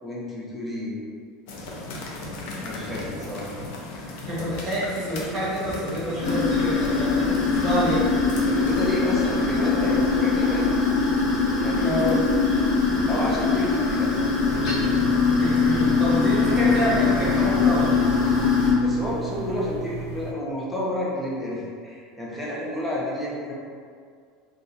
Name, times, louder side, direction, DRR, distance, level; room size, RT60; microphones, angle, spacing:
voice 1, 0.0-1.0 2.6-3.6 8.5-10.7 11.6-12.2 13.1-14.1 14.5-15.1 18.8-23.5, left 1 dB, 5° left, -6 dB, 0.6 m, -30 dB
sound 1, 1.5-17.8, left 2 dB, 65° left, 0.6 m, -40 dB
voice 2, 4.1-8.1 11.8-12.1 15.4-17.9, equal, 30° right, -9 dB, 1.3 m, -27 dB
sound 2, 6.2-18.7, left 4 dB, 50° left, 0.9 m, -22 dB
sound 3, 14.5-20.3, right 4 dB, 85° right, 0.4 m, -35 dB
2.7 x 2.3 x 3.8 m, 2.1 s
supercardioid pair, 150°, 0 cm